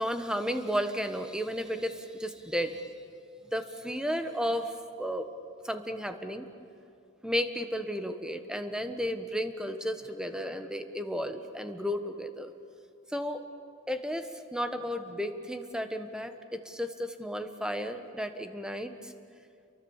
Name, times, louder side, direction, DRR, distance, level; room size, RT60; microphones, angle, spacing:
voice 1, 0.0-2.9 3.5-5.3 5.6-6.5 7.2-12.5 13.1-13.4 13.9-16.3 16.6-19.1, equal, 5° right, 7 dB, 1.3 m, -33 dB
28.5 x 23.5 x 7.3 m, 2.5 s
head